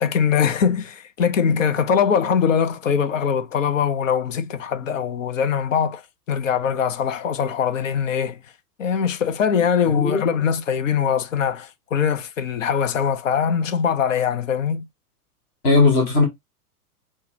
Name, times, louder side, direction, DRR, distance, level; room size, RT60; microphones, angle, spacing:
voice 1, 0.0-6.0 6.3-8.4 8.8-14.9, left 7 dB, 55° left, 0.7 m, -22 dB
voice 2, 15.6-16.2, left 3 dB, 10° left, 0.4 m, -17 dB
4.4 x 2.1 x 3.2 m
figure-of-eight pair, 105°, 47 cm